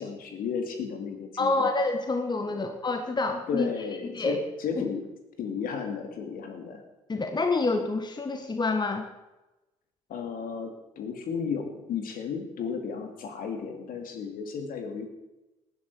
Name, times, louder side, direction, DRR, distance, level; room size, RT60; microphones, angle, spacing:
voice 1, 0.0-1.7 2.5-2.6 3.5-5.0 5.4-6.8 10.1-15.1, left 6 dB, 60° left, 5 dB, 2.5 m, -33 dB
voice 2, 1.4-3.7 4.1-4.4 4.8-4.9 7.1-9.1, left 3 dB, 25° left, 6 dB, 1.6 m, -27 dB
18.5 x 10.5 x 4.8 m, 1.0 s
hypercardioid pair, 50°, 17 cm